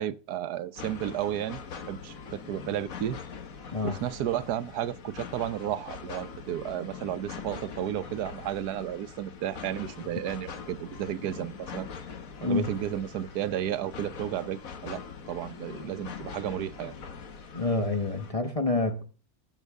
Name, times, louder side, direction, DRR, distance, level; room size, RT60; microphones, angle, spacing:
voice 1, 0.0-1.6 1.9-3.2 3.8-11.9 12.4-16.9, right 11 dB, 85° right, 1.3 m, -33 dB
sound 1, 0.8-18.3, left 6 dB, 60° left, 1.6 m, -43 dB
voice 2, 12.4-12.7 17.5-19.0, left 3 dB, 25° left, 1.0 m, -28 dB
14.5 x 8.1 x 3.5 m
omnidirectional pair, 1.6 m